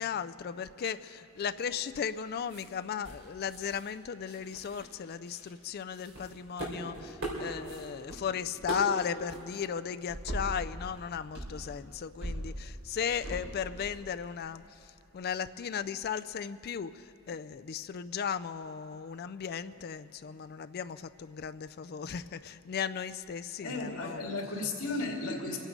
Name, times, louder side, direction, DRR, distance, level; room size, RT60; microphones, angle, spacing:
voice 1, 0.0-24.3, left 7 dB, 45° left, 12 dB, 0.3 m, -36 dB
sound 1, 1.6-2.2 2.5-2.6 3.0-3.9 4.2-5.5 5.9-8.2 8.4-9.0 9.3-9.4 10.1-11.0 11.3-14.0, right 1 dB, 60° right, 3.4 m, -40 dB
voice 2, 23.6-25.6, left 2 dB, 85° left, 0 dB, 2.4 m, -34 dB
25.0 x 9.0 x 5.2 m, 2.6 s
head